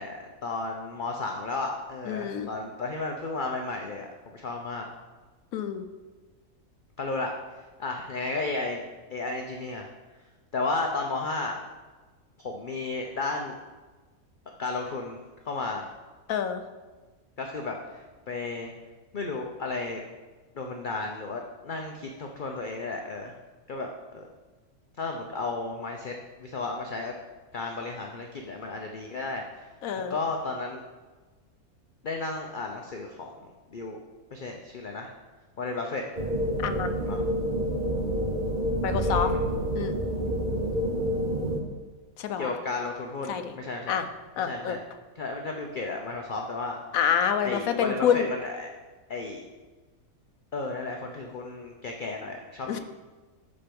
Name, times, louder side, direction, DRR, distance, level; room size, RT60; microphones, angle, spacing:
voice 1, 0.0-4.1 4.3-4.9 7.0-7.3 7.8-8.8 9.1-9.9 10.5-11.6 12.4-13.6 14.6-15.2 15.4-15.9 17.4-18.7 19.1-20.0 20.5-23.3 23.7-24.3 25.0-26.1 26.4-27.1 27.5-29.6 30.1-30.8 32.0-34.0 34.3-35.1 35.6-36.0 37.1-37.2 39.1-39.4 42.4-44.0 44.4-44.8 45.2-46.8 47.4-48.7 49.1-49.4 50.5-52.8, left 3 dB, 45° left, 2 dB, 0.7 m, -33 dB
voice 2, 2.1-2.5 5.5-5.8 16.3-16.6 29.8-30.2 36.6-36.9 38.8-39.3 39.7-39.9 42.2-42.5 43.3-43.5 43.9-44.1 44.4-44.8 46.9-48.3 52.7-52.8, left 8 dB, 70° left, 8 dB, 1.1 m, -27 dB
sound 1, 36.1-41.6, equal, 40° right, 1.0 m, -28 dB
12.0 x 4.5 x 5.2 m, 1.3 s
omnidirectional pair, 1.5 m